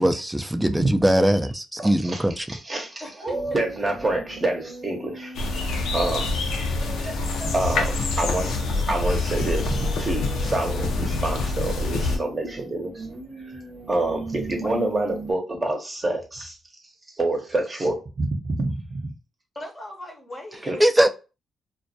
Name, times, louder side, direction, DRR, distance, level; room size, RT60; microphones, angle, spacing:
voice 1, 0.0-2.6 20.8-21.1, right 1 dB, 10° right, 0.3 m, -21 dB
voice 2, 1.8-2.2 2.5-5.3 5.9-7.2 7.5-8.6 8.9-13.1 13.5-13.6 13.9-16.6 17.2-19.1 20.7-20.8, right 2 dB, 30° right, 0.7 m, -27 dB
voice 3, 3.0-3.6 4.3-4.5 14.6-14.9 19.5-20.8, left 1 dB, 25° left, 0.7 m, -39 dB
sound 1, 3.3-15.3, right 2 dB, 65° right, 0.7 m, -39 dB
sound 2, 5.3-12.2, left 3 dB, 85° left, 0.5 m, -26 dB
2.2 x 2.1 x 2.6 m
cardioid pair, 75°, 0 cm